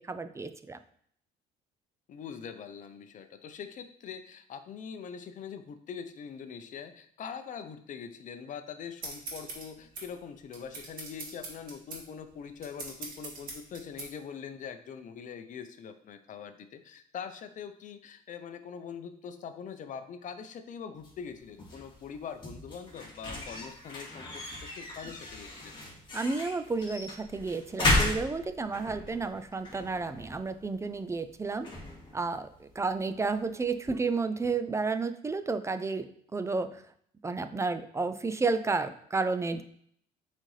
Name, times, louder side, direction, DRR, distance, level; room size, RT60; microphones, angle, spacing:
voice 1, 0.1-0.8 26.1-31.7 32.1-36.1 36.3-36.8 37.2-39.6, right 4 dB, 15° right, 10 dB, 0.4 m, -31 dB
voice 2, 2.1-25.7, left 7 dB, 50° left, 8 dB, 0.7 m, -43 dB
sound 1, 9.0-14.1, right 3 dB, 55° right, 1.9 m, -43 dB
sound 2, 20.9-33.7, left 2 dB, 30° left, 2.4 m, -36 dB
7.5 x 4.1 x 3.2 m, 0.64 s
cardioid pair, 110°, 17 cm